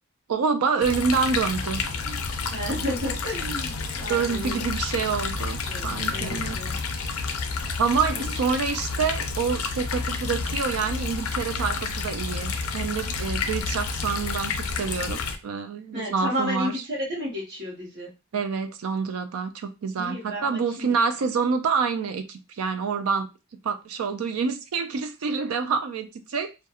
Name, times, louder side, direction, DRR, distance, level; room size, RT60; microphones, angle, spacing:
voice 1, 0.3-2.2 4.1-6.6 7.8-16.8 18.3-23.3 23.6-26.7, right 5 dB, 75° right, 0.4 m, -27 dB
sound 1, 0.8-15.4, left 4 dB, 75° left, 0.4 m, -30 dB
voice 2, 2.5-5.3 5.7-6.8 8.1-8.2 15.9-16.8 17.1-18.1 20.0-20.9, equal, 50° right, 0.9 m, -33 dB
2.8 x 2.2 x 2.3 m
head